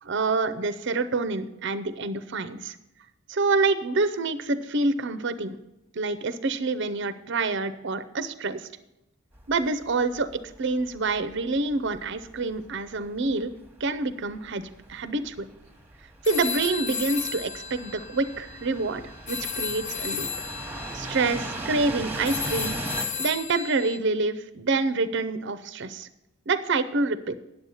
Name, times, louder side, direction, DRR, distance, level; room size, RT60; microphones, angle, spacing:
voice 1, 0.0-2.8 3.3-5.6 5.9-8.7 9.5-13.5 13.8-15.5 16.2-20.3 20.9-22.7 23.2-26.1 26.5-27.4, right 3 dB, 60° right, 12 dB, 0.6 m, -27 dB
sound 1, 9.3-23.1, right 2 dB, 10° right, 1.1 m, -39 dB
sound 2, 16.2-24.0, left 6 dB, 35° left, 0.6 m, -34 dB
9.6 x 7.9 x 5.6 m, 0.90 s
head